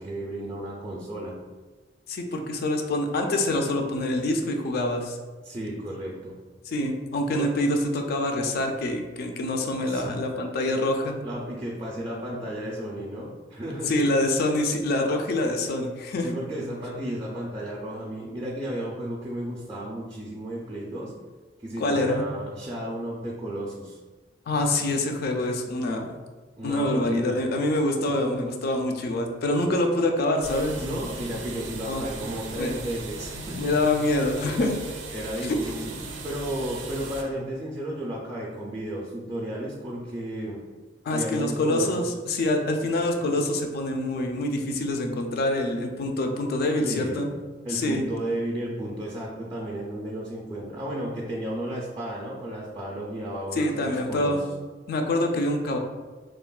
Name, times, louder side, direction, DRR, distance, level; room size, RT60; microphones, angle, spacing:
voice 1, 0.0-1.4 5.4-6.3 7.3-7.5 9.8-10.2 11.2-14.0 16.2-21.1 21.6-24.0 24.8-24.9 26.6-27.4 28.0-28.1 30.8-33.8 34.4-34.6 35.1-40.6 41.1-42.0 46.8-47.2 47.6-54.4, right 1 dB, 20° right, -4 dB, 0.3 m, -33 dB
voice 2, 2.1-5.2 6.7-11.2 13.9-16.3 21.8-22.2 24.5-26.1 26.6-30.8 31.9-32.0 32.6-32.7 33.6-34.7 35.5-35.6 41.0-47.3 47.7-48.0 53.5-54.4 54.9-55.8, left 1 dB, 55° left, 4 dB, 0.3 m, -25 dB
sound 1, 30.4-37.2, right 3 dB, 90° right, 0.4 m, -38 dB
3.2 x 2.1 x 2.3 m, 1.3 s
head